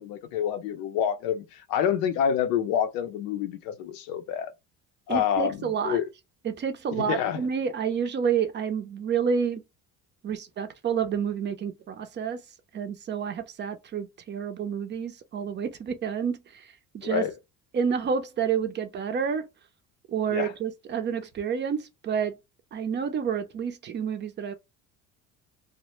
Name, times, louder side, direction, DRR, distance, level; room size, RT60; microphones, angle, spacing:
voice 1, 0.0-4.5 5.1-6.0 7.0-7.4 17.0-17.3 20.3-20.5, left 9 dB, 90° left, 0.6 m, -27 dB
voice 2, 5.1-6.0 6.4-9.6 10.2-12.4 12.7-17.3 17.7-19.5 20.1-22.4 22.7-24.5, right 7 dB, 30° right, 0.5 m, -29 dB
2.1 x 2.0 x 2.9 m
cardioid pair, 115°, 34 cm